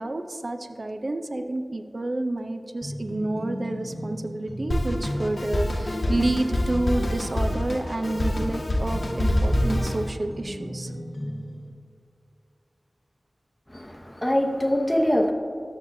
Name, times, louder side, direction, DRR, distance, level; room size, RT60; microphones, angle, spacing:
voice 1, 0.0-10.9, right 2 dB, 50° right, 7 dB, 0.4 m, -29 dB
sound 1, 2.8-11.7, equal, 35° left, 1.0 m, -36 dB
Drum kit, 4.7-10.1, left 1 dB, 65° left, 1.0 m, -26 dB
voice 2, 13.7-15.3, equal, 10° left, 2 dB, 0.8 m, -23 dB
12.5 x 7.1 x 2.6 m, 2.4 s
wide cardioid pair, 75°, 0 cm